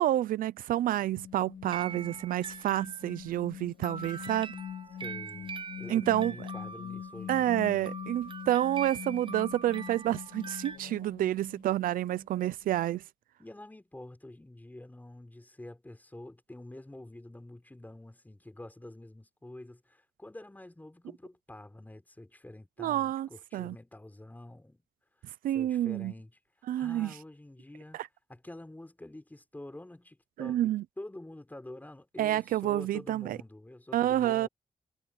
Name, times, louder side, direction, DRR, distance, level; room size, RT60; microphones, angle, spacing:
voice 1, 0.0-4.6 5.9-6.4 7.3-13.0 22.8-23.7 25.4-26.1 26.7-27.1 27.9-28.1 30.4-30.8 32.2-33.4 33.9-34.5, right 13 dB, 90° right, 0.5 m, -29 dB
sound 1, 1.1-13.0, left 9 dB, 80° left, 2.2 m, -44 dB
sound 2, 1.7-3.3 3.8-10.8, right 5 dB, 35° right, 1.1 m, -43 dB
voice 2, 5.0-7.8 13.4-24.8 25.5-26.3 26.7-28.0 28.3-34.5, left 1 dB, 10° left, 4.3 m, -47 dB
cardioid pair, 80°, 14 cm